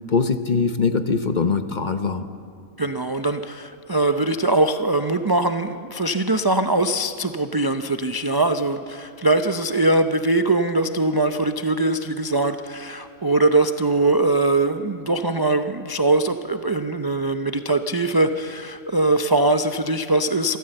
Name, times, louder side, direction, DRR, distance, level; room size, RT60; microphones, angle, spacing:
voice 1, 0.1-2.3, left 4 dB, 40° left, 9 dB, 0.9 m, -22 dB
voice 2, 2.8-20.6, right 2 dB, 35° right, 7 dB, 0.4 m, -21 dB
26.0 x 14.0 x 7.8 m, 2.3 s
omnidirectional pair, 1.4 m